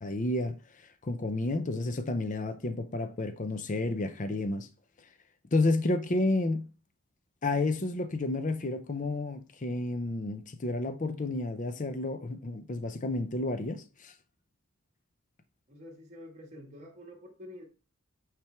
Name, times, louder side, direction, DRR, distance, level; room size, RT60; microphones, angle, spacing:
voice 1, 0.0-4.7 5.0-5.1 5.5-6.6 7.4-14.1, left 2 dB, 35° left, 0.5 m, -31 dB
voice 2, 15.7-17.6, left 1 dB, 30° right, 1.7 m, -48 dB
8.9 x 3.4 x 4.5 m
head